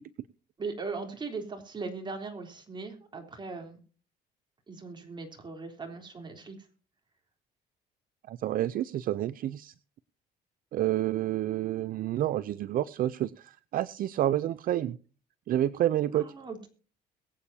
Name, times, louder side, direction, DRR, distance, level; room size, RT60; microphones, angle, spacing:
voice 1, 0.6-3.8 4.7-6.5 16.1-16.7, right 4 dB, 25° right, 4 dB, 3.5 m, -39 dB
voice 2, 8.3-9.7 10.7-15.0 15.5-16.3, right 13 dB, 60° right, 16 dB, 0.6 m, -29 dB
22.0 x 8.6 x 2.8 m, 0.38 s
cardioid pair, 110°, 17 cm